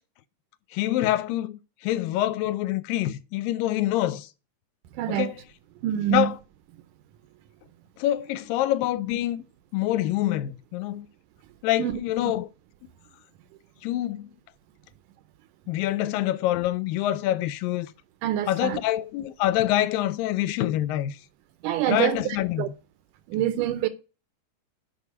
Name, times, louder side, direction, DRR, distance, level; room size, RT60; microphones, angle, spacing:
voice 1, 0.7-4.3 5.1-5.3 6.1-6.3 8.0-9.4 9.7-11.1 11.6-12.5 13.8-14.3 15.7-17.9 18.5-21.2 21.9-22.6, left 14 dB, 90° left, 2.3 m, -26 dB
voice 2, 4.9-5.3 5.8-6.3 11.8-12.0 18.2-18.8 21.6-22.7 23.3-23.9, right 13 dB, 80° right, 2.0 m, -26 dB
7.9 x 5.5 x 4.6 m
omnidirectional pair, 3.9 m